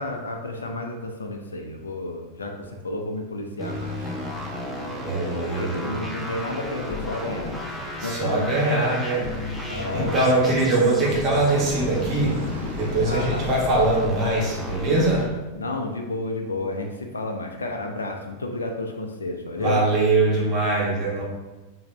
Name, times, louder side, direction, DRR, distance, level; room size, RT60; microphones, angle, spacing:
voice 1, 0.0-4.1 5.3-7.6 8.0-8.5 9.7-10.5 13.0-13.8 15.5-19.9, left 2 dB, 75° left, 3 dB, 0.4 m, -31 dB
sound 1, 3.6-15.3, left 2 dB, ahead, 0.6 m, -33 dB
sound 2, 3.6-13.8, right 1 dB, 75° right, 0.4 m, -42 dB
voice 2, 5.0-5.9 8.0-12.4 12.7-15.3 19.6-21.2, right 2 dB, 35° right, -4 dB, 1.1 m, -22 dB
3.2 x 2.6 x 3.2 m, 1.1 s
figure-of-eight pair, 90°, 0 cm